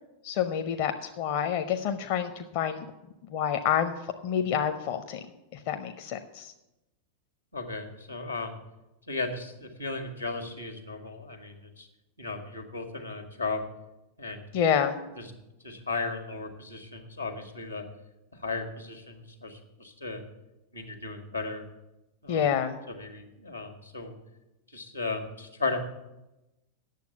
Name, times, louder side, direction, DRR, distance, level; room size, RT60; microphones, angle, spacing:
voice 1, 0.2-2.9 3.3-3.9 4.2-5.2 5.5-6.5 14.5-15.0 22.3-22.7, left 8 dB, 45° left, 7 dB, 0.6 m, -28 dB
voice 2, 7.5-8.6 9.1-11.9 12.2-13.6 14.2-14.6 15.1-15.3 15.6-17.8 18.3-20.2 20.7-21.6 22.2-22.4 22.9-24.1 24.7-25.8, left 3 dB, 90° left, 6 dB, 1.4 m, -35 dB
9.3 x 7.1 x 7.8 m, 0.96 s
figure-of-eight pair, 90°, 0 cm